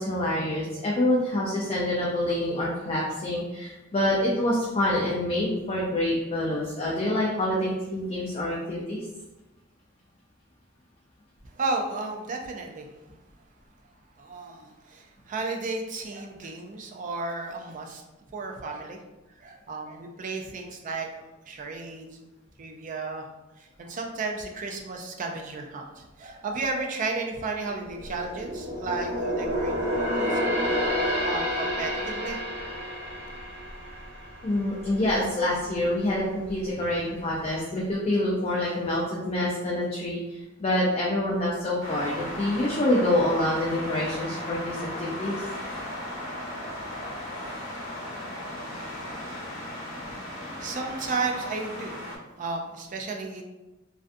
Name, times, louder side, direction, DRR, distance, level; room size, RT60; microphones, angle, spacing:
voice 1, 0.0-9.0 34.4-45.4 50.5-50.6, left 1 dB, 30° left, -4 dB, 0.4 m, -26 dB
voice 2, 11.4-12.9 14.2-18.0 18.3-19.0 19.3-22.2 22.6-23.3 23.6-30.7 31.2-32.4 50.1-53.4, right 3 dB, 40° right, 2 dB, 0.3 m, -34 dB
sound 1, 27.7-35.2 35.6-35.8 36.4-37.1 37.4-37.5, equal, 80° right, 0.8 m, -29 dB
sound 2, 41.8-52.2, left 1 dB, 80° left, 0.7 m, -36 dB
2.5 x 2.2 x 2.5 m, 1.0 s
head